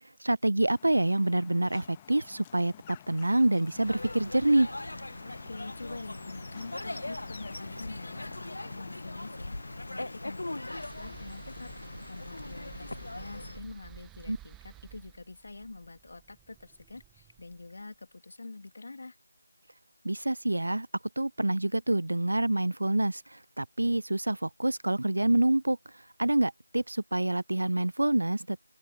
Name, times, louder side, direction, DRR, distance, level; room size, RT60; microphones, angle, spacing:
voice 1, 0.2-2.7 3.1-4.7 14.3-14.4 20.0-20.9 21.2-23.2 23.6-25.8 26.2-28.6, right 1 dB, 65° right, 0.8 m, -26 dB
sound 1, 0.7-10.7, left 11 dB, 15° left, 1.5 m, -52 dB
sound 2, 3.7-13.6, left 2 dB, 65° left, 1.3 m, -40 dB
voice 2, 5.2-19.2, left 3 dB, 50° left, 3.0 m, -46 dB
sound 3, 10.6-17.8, right 15 dB, 5° right, 1.1 m, -53 dB
open air
figure-of-eight pair, 165°, 0 cm